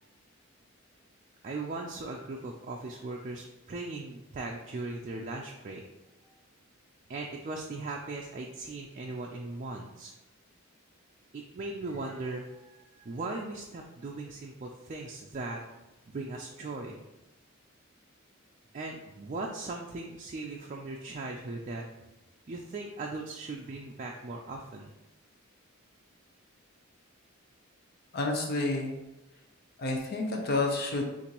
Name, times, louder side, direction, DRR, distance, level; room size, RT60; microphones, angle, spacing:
voice 1, 1.4-5.8 7.1-10.1 11.3-15.6 16.1-17.0 18.7-21.8 22.5-24.9, right 3 dB, 35° right, 0 dB, 0.4 m, -38 dB
voice 2, 28.1-28.9 29.8-31.0, left 2 dB, 50° left, 1 dB, 0.7 m, -29 dB
6.8 x 2.6 x 2.9 m, 1.0 s
head